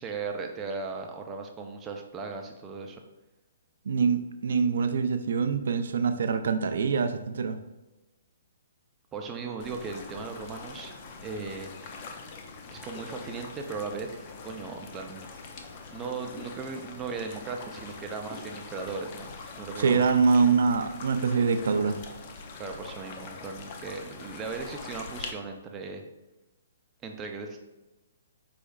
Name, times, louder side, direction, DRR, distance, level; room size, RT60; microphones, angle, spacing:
voice 1, 0.0-3.0 9.1-10.9 11.2-11.7 12.7-15.3 15.9-19.3 19.6-20.1 22.6-26.0 27.0-27.6, right 4 dB, 20° right, 3 dB, 0.5 m, -37 dB
voice 2, 3.9-7.6 19.8-22.0, right 5 dB, 70° right, 9 dB, 0.4 m, -24 dB
sound 1, 9.6-25.3, left 4 dB, 40° left, 0.6 m, -43 dB
4.8 x 4.2 x 2.4 m, 1.1 s
hypercardioid pair, 145°, 0 cm